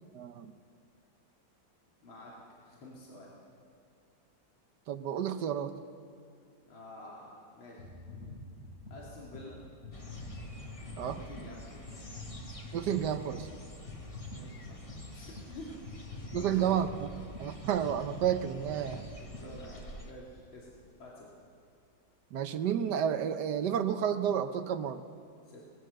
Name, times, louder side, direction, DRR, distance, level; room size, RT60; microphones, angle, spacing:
voice 1, 0.1-0.6 4.9-5.7 11.0-11.2 12.7-13.5 16.3-17.1 17.4-19.1 22.3-25.0, right 9 dB, 65° right, 10 dB, 1.4 m, -31 dB
voice 2, 2.0-2.3 2.6-3.3 6.6-7.9 8.9-9.6 11.1-12.0 14.3-16.1 16.3-16.7 18.7-18.9 19.2-20.7 21.0-21.3 25.4-25.6, left 1 dB, 85° left, -4 dB, 3.2 m, -49 dB
sound 1, 7.8-20.2 20.8-20.9, left 2 dB, 35° left, 5.6 m, -46 dB
sound 2, 9.9-20.1, left 1 dB, 20° left, 1.4 m, -49 dB
22.0 x 19.5 x 6.5 m, 2.3 s
omnidirectional pair, 2.1 m